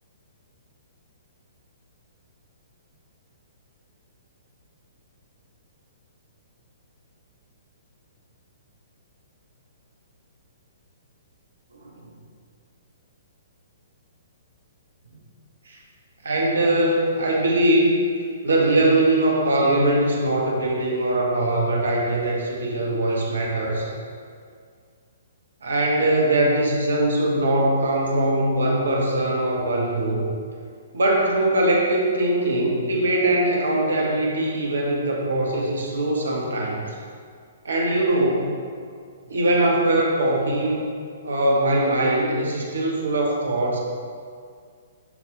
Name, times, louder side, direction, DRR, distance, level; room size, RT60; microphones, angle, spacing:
voice 1, 16.2-17.9 18.4-23.9 25.6-30.2 30.9-36.8 37.6-38.5 39.3-40.9 41.2-43.8, right 1 dB, 70° right, -2 dB, 1.9 m, -21 dB
11.0 x 4.9 x 4.1 m, 2.1 s
figure-of-eight pair, 120°, 0 cm